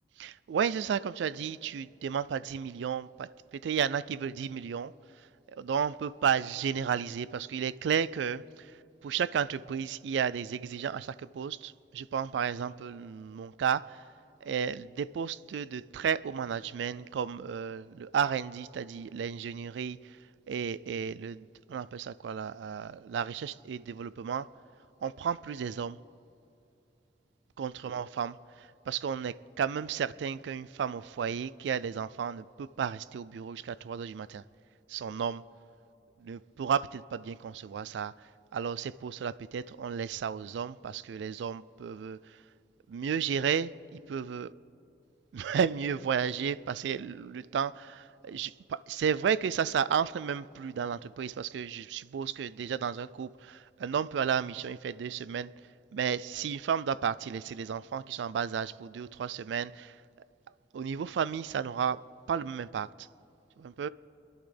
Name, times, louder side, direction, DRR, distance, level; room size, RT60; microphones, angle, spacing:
voice 1, 0.2-4.9 5.6-14.0 14.4-20.2 20.5-24.5 25.0-26.0 27.6-34.4 34.9-35.4 36.2-42.4 42.9-44.5 45.3-55.5 55.9-60.0 60.7-62.0 62.3-63.1 63.6-63.9, right 7 dB, 85° right, 0.3 m, -33 dB
28.5 x 11.0 x 3.4 m
head